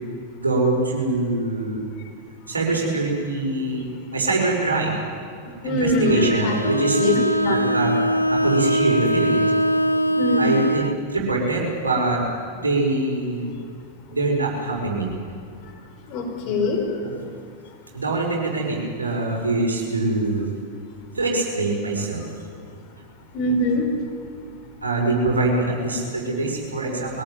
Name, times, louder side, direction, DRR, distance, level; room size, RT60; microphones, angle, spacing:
voice 1, 0.4-1.9 2.5-5.0 5.6-7.1 7.5-7.9 8.3-9.5 10.4-12.2 12.5-13.6 14.1-15.1 17.0-17.1 17.9-20.5 21.1-22.2 24.8-27.2, right 2 dB, 75° right, -1 dB, 5.7 m, -24 dB
voice 2, 5.6-6.6 6.9-7.5 10.2-10.6 16.1-16.9 23.3-23.9, left 2 dB, 40° left, 3 dB, 4.9 m, -23 dB
Bowed string instrument, 6.0-11.0, right 1 dB, 90° left, 0.8 m, -22 dB
23.0 x 17.5 x 9.3 m, 2.3 s
figure-of-eight pair, 90°, 0 cm